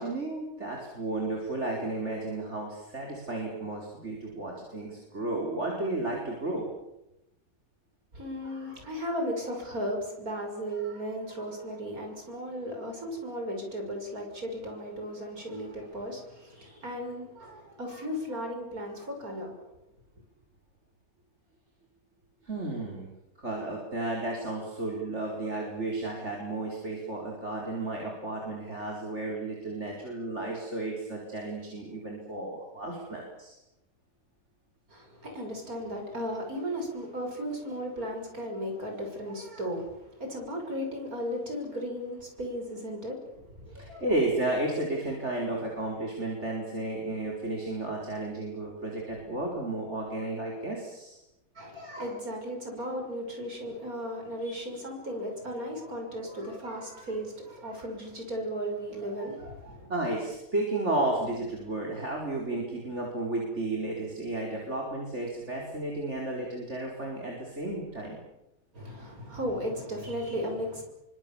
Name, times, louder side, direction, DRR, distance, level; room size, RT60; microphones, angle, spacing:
voice 1, 0.0-6.7 22.4-23.1 23.4-33.6 43.7-51.2 59.9-68.2, right 2 dB, 45° right, 0 dB, 5.2 m, -33 dB
voice 2, 8.1-19.7 34.9-44.1 51.6-59.9 68.7-70.9, equal, 70° right, 3 dB, 6.9 m, -36 dB
28.5 x 24.5 x 7.2 m, 0.89 s
omnidirectional pair, 1.6 m